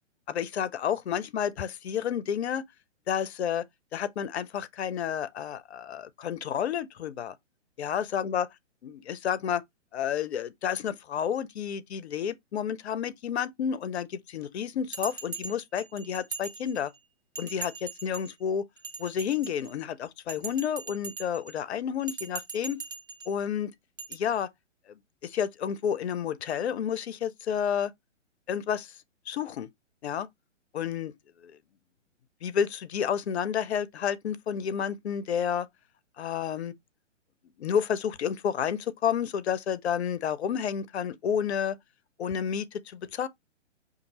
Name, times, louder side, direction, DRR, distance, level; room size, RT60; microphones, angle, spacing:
voice 1, 0.3-2.6 3.1-3.6 3.9-7.3 7.8-8.5 8.8-9.6 9.9-16.9 17.4-18.6 19.0-22.8 23.3-23.7 24.1-24.5 25.2-27.9 28.5-28.9 29.3-29.7 30.0-30.3 30.7-31.1 31.4-31.6 32.4-35.7 36.2-36.7 37.6-41.8 42.2-43.3, left 8 dB, 60° left, 0.6 m, -30 dB
Bell, 14.9-17.0 17.3-18.3 18.8-19.8 20.3-21.5 22.0-23.3 24.0-24.1, right 5 dB, 20° right, 0.4 m, -40 dB
5.1 x 2.6 x 2.8 m
figure-of-eight pair, 125°, 37 cm